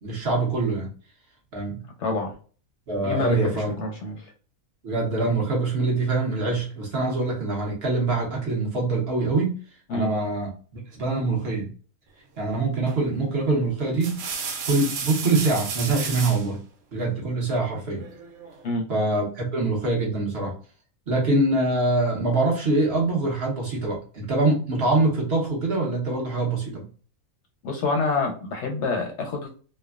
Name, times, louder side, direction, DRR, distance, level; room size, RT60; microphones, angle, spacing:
voice 1, 0.0-0.9 1.5-1.8 2.9-3.8 4.8-9.5 9.9-10.5 10.9-11.7 12.4-14.2 14.7-16.6 16.9-18.0 18.9-20.5 21.1-26.8, right 2 dB, 50° right, -2 dB, 1.0 m, -24 dB
voice 2, 2.0-2.3 3.0-4.2 9.9-10.1 18.6-18.8 27.6-29.6, left 3 dB, 65° left, 1 dB, 0.8 m, -27 dB
sound 1, 12.9-13.2 13.8-16.5 18.0-18.6, right 5 dB, 75° right, 1.1 m, -33 dB
3.2 x 2.1 x 2.3 m, 0.40 s
omnidirectional pair, 1.5 m